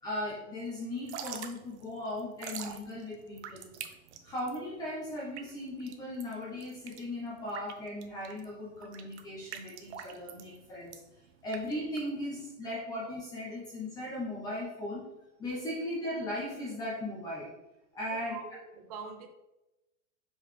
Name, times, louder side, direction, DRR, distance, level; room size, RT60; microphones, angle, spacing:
voice 1, 0.0-3.7 4.2-11.0 11.4-15.1 15.4-17.5 17.9-18.4, left 1 dB, 10° left, -6 dB, 0.6 m, -37 dB
Drip / Trickle dribble, 0.9-12.5, right 8 dB, 55° right, 0.8 m, -46 dB
voice 2, 18.1-19.3, right 5 dB, 30° right, 4 dB, 0.4 m, -44 dB
5.8 x 5.3 x 3.3 m, 0.96 s
supercardioid pair, 175°, 41 cm